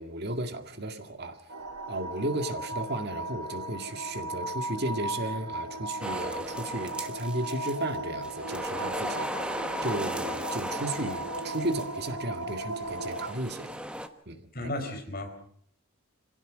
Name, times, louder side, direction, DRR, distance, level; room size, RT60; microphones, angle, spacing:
voice 1, 0.0-1.4 1.9-13.7 14.3-14.7, right 1 dB, 50° right, 7 dB, 2.0 m, -34 dB
sound 1, 1.5-13.3, right 1 dB, 80° right, 2.1 m, -37 dB
sound 2, 6.0-8.0 8.2-12.1 12.8-14.1, right 1 dB, 5° right, 1.2 m, -37 dB
voice 2, 14.3-15.3, left 1 dB, 45° left, 4 dB, 4.7 m, -35 dB
26.5 x 17.0 x 6.2 m, 0.63 s
head